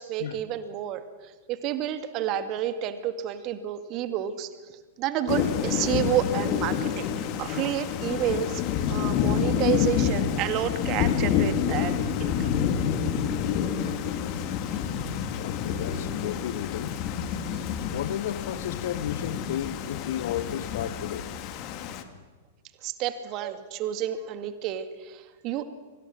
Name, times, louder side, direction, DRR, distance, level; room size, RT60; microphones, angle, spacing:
voice 1, 0.0-7.1 7.4-12.5 22.8-25.6, right 10 dB, 40° right, 2.2 m, -30 dB
Thunder / Rain, 5.3-22.0, left 8 dB, 40° left, 2.3 m, -28 dB
voice 2, 15.4-16.9 17.9-21.6, left 10 dB, 60° left, 1.5 m, -33 dB
29.5 x 24.5 x 6.4 m
figure-of-eight pair, 95°, 0 cm